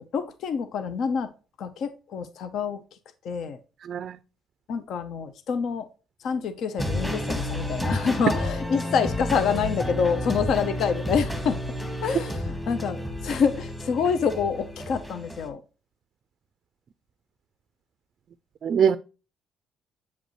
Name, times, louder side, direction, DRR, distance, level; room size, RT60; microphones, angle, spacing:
voice 1, 0.1-1.3 1.6-2.8 3.2-3.6 4.7-5.9 6.2-11.6 12.0-15.6, left 6 dB, 60° left, 0.8 m, -27 dB
sound 1, 6.8-15.5, left 1 dB, 10° left, 1.5 m, -31 dB
voice 2, 18.6-19.0, right 7 dB, 45° right, 0.4 m, -22 dB
8.2 x 5.1 x 3.1 m
cardioid pair, 145°, 0 cm